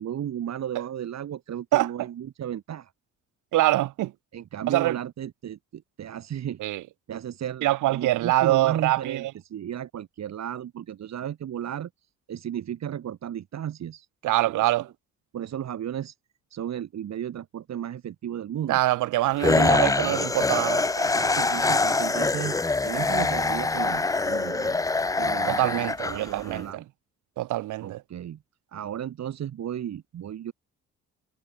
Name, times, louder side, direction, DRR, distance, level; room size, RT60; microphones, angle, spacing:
voice 1, 0.0-2.9 4.3-6.6 7.1-11.9 12.3-14.1 14.5-14.7 15.3-16.1 16.5-18.8 21.0-22.6 22.8-24.8 25.2-26.8 27.8-28.4 28.7-30.5, right 10 dB, 60° right, 2.5 m, -34 dB
voice 2, 3.5-4.1 4.7-5.0 6.6-6.8 7.6-9.3 14.2-14.9 18.7-20.8 25.5-26.8 27.4-28.0, right 16 dB, 80° right, 1.0 m, -24 dB
sound 1, 19.4-26.6, left 3 dB, 10° left, 0.5 m, -24 dB
cardioid pair, 90°, 30 cm